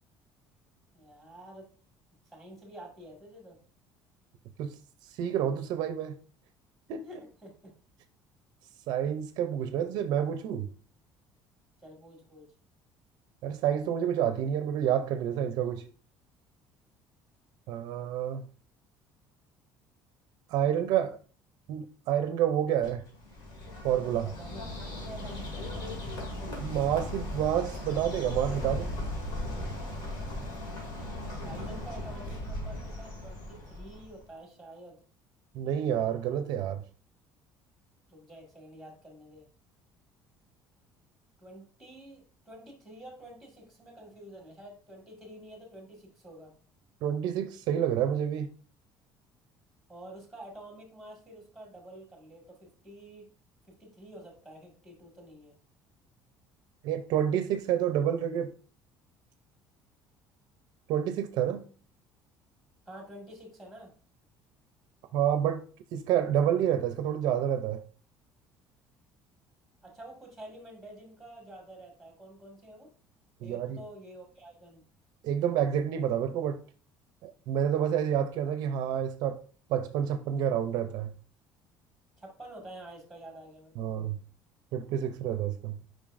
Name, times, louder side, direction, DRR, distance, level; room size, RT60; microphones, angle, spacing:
voice 1, 0.9-1.7 2.3-3.6 7.0-7.7 11.8-12.5 24.4-25.8 31.4-35.0 38.1-39.5 41.4-46.5 49.9-53.3 53.7-55.6 62.9-63.9 69.8-72.9 73.4-74.8 82.2-83.9, right 1 dB, ahead, 1.7 m, -48 dB
voice 2, 5.2-6.1 6.9-7.1 8.9-10.7 13.4-15.9 17.7-18.4 20.5-21.2 21.7-23.0 23.8-24.3 26.6-29.0 35.5-36.8 47.0-48.5 56.8-58.5 60.9-61.6 65.1-65.6 65.9-67.8 73.4-73.8 75.2-76.6 77.2-79.4 79.7-81.1 83.8-84.2 84.7-85.8, right 9 dB, 60° right, 0.5 m, -28 dB
Bird, 22.8-34.2, left 1 dB, 65° left, 2.4 m, -37 dB
7.1 x 5.2 x 2.5 m
cardioid pair, 175°, 8 cm